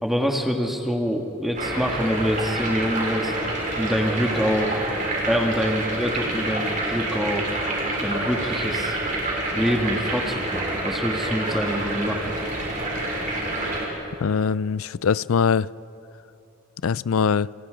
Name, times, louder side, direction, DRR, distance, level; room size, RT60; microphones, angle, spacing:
voice 1, 0.0-3.3 3.8-4.8 5.3-7.4 8.0-9.0 9.5-12.2, equal, ahead, 1 dB, 1.7 m, -25 dB
sound 1, 1.5-13.9, right 1 dB, 35° right, 6.0 m, -27 dB
voice 2, 14.2-15.7 16.8-17.5, left 6 dB, 70° left, 20 dB, 0.4 m, -22 dB
29.5 x 28.5 x 5.1 m, 2.8 s
head